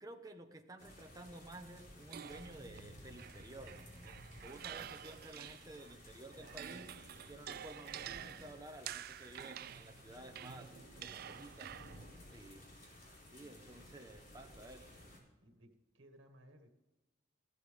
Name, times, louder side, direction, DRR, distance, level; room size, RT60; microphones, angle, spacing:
voice 1, 0.0-6.9 7.3-10.7 11.0-11.8 12.3-12.7 13.3-14.9, right 1 dB, 20° right, 4 dB, 1.1 m, -53 dB
sound 1, 0.8-15.2, left 1 dB, 50° left, 4.2 m, -56 dB
sound 2, 2.1-5.9 6.3-12.1, right 10 dB, 50° right, 0.3 m, -49 dB
voice 2, 4.3-4.7 6.3-6.9 10.9-11.6 13.4-13.8 15.4-16.7, right 1 dB, 85° right, 4 dB, 1.8 m, -61 dB
15.5 x 12.5 x 3.6 m, 1.1 s
head